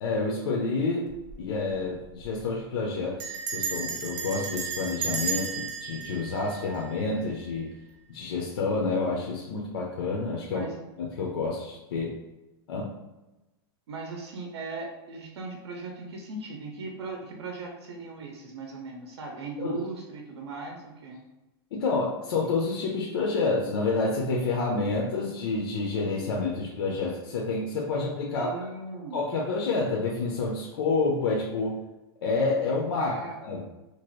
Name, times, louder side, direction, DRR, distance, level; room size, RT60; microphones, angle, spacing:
voice 1, 0.0-1.1 1.4-7.7 8.1-10.7 11.0-12.1 12.7-12.9 19.6-19.8 21.7-28.5 29.1-31.8 32.2-33.1 33.4-33.6, left 3 dB, 70° left, -2 dB, 0.6 m, -28 dB
Bell, 1.1-1.4 1.7-1.8 2.0-2.4 3.2-7.3, right 6 dB, 50° right, 0.7 m, -34 dB
voice 2, 10.5-10.8 13.9-21.2 28.3-29.4 33.0-33.4, right 3 dB, 90° right, 1 dB, 0.6 m, -38 dB
2.9 x 2.4 x 3.1 m, 1.0 s
supercardioid pair, 155°, 14 cm